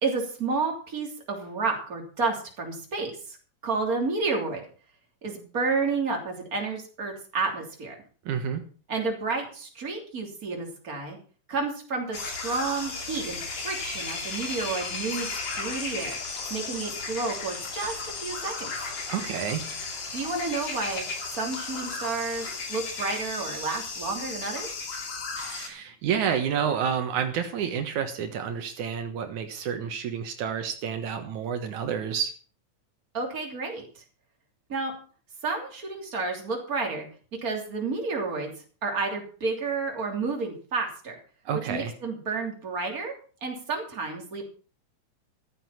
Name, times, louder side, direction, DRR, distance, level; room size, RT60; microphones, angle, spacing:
voice 1, 0.0-3.4 3.6-4.6 5.2-8.0 8.9-11.2 11.5-16.2 16.5-17.9 18.2-18.7 20.1-21.1 21.3-24.8 33.1-34.0 34.7-34.9 35.4-37.1 37.4-38.5 38.8-41.2 41.7-43.1 43.4-44.4, right 4 dB, 30° right, 1 dB, 3.4 m, -30 dB
voice 2, 8.3-8.6 19.1-19.6 25.4-32.3 41.5-41.9, right 8 dB, 75° right, 6 dB, 2.7 m, -29 dB
sound 1, 12.1-25.7, left 4 dB, 65° left, 3.8 m, -35 dB
14.5 x 10.0 x 5.7 m, 0.40 s
omnidirectional pair, 3.4 m